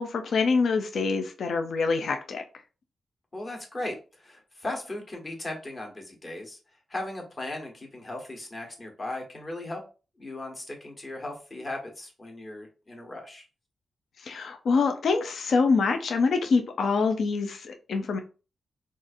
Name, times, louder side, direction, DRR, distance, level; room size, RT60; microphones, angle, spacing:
voice 1, 0.0-2.4 14.2-18.2, left 4 dB, 70° left, 6 dB, 0.4 m, -25 dB
voice 2, 3.3-6.6 6.9-9.8 10.2-13.5, left 2 dB, 35° left, 1 dB, 1.1 m, -37 dB
3.9 x 2.4 x 2.5 m, 0.33 s
cardioid pair, 105°, 0 cm